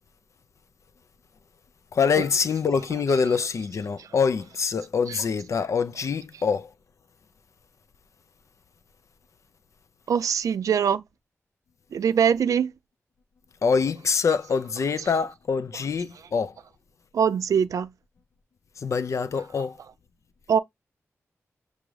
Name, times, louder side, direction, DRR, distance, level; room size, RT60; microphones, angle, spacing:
voice 1, 1.9-6.7 13.6-16.5 18.8-19.8, left 5 dB, 65° left, 0.4 m, -25 dB
voice 2, 10.1-11.0 11.9-12.7 15.0-15.1 17.1-17.9 20.5-20.6, right 7 dB, 85° right, 0.3 m, -23 dB
6.0 x 2.5 x 3.1 m
wide cardioid pair, 80°, 6 cm